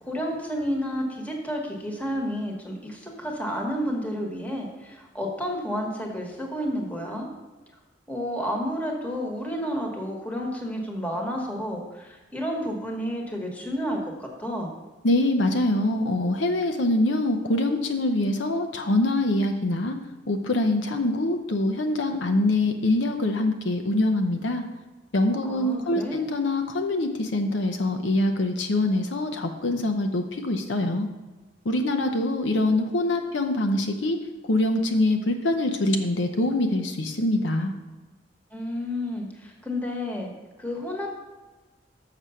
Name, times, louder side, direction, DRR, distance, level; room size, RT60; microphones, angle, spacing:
voice 1, 0.0-7.3 8.1-14.7 25.4-26.2 38.5-40.3 40.6-41.2, equal, 10° left, 1 dB, 1.3 m, -31 dB
voice 2, 15.0-20.0 20.3-24.6 25.1-31.1 31.6-34.2 34.4-37.7, left 1 dB, 70° left, 5 dB, 0.7 m, -24 dB
6.7 x 6.1 x 5.6 m, 1.2 s
head